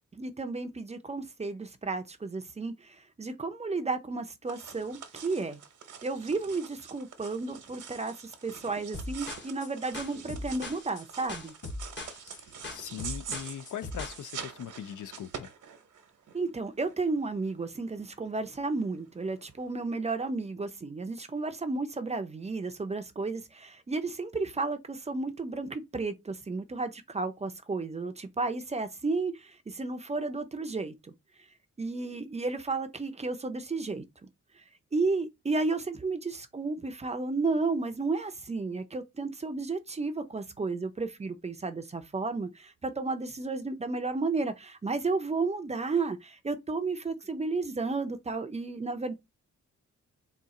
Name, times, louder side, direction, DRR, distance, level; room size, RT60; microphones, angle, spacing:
voice 1, 0.2-2.7 3.2-5.6 6.0-11.5 16.3-30.9 31.8-34.0 34.9-49.1, right 3 dB, 20° right, 0.5 m, -32 dB
sound 1, 4.5-19.8, right 7 dB, 80° right, 0.9 m, -46 dB
sound 2, 8.9-14.2, left 2 dB, 40° left, 0.9 m, -40 dB
voice 2, 12.7-15.5, left 9 dB, 75° left, 0.5 m, -40 dB
4.1 x 2.4 x 3.7 m
wide cardioid pair, 160°, 30 cm